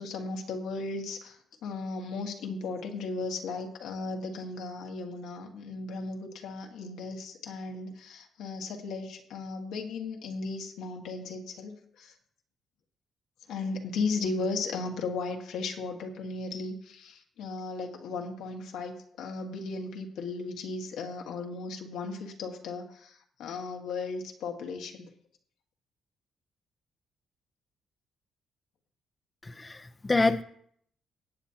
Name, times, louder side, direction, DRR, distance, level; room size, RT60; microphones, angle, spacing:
voice 1, 0.0-12.1 13.5-25.1, left 3 dB, 85° left, 2 dB, 1.6 m, -36 dB
voice 2, 29.4-30.4, left 3 dB, 20° left, 7 dB, 0.6 m, -27 dB
17.5 x 8.3 x 2.9 m, 0.65 s
cardioid pair, 90°, 0 cm